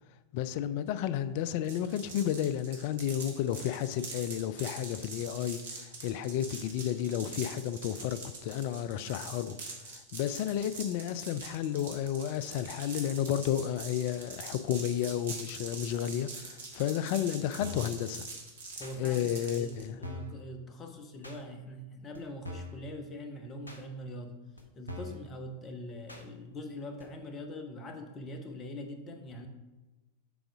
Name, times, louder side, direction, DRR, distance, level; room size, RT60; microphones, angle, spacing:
voice 1, 0.3-9.6 9.9-18.3 19.0-20.0, left 10 dB, 45° left, 13 dB, 0.3 m, -32 dB
sound 1, 1.6-19.8, right 4 dB, 65° right, 1.3 m, -44 dB
sound 2, 17.6-17.9 18.8-19.0 19.7-19.8 20.0-20.4 21.2-21.4 22.1-22.2 22.4-22.8 23.7-23.8 24.6-24.7 24.9-25.2 26.1-26.3 27.0-27.1, left 1 dB, 80° left, 0.6 m, -42 dB
voice 2, 18.8-24.4 24.7-29.5, left 1 dB, 25° left, 6 dB, 0.9 m, -43 dB
7.0 x 3.8 x 4.8 m, 1.1 s
figure-of-eight pair, 90°, 0 cm